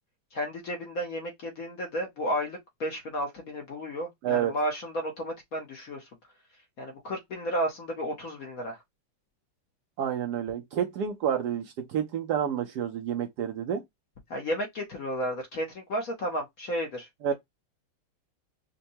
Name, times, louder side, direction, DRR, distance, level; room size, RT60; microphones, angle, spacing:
voice 1, 0.3-6.0 6.8-8.8 14.3-17.3, equal, 55° left, 1.1 m, -33 dB
voice 2, 4.2-4.5 10.0-11.6 11.9-13.8 17.2-17.3, right 9 dB, 80° right, 0.9 m, -29 dB
5.3 x 2.2 x 2.7 m
omnidirectional pair, 2.3 m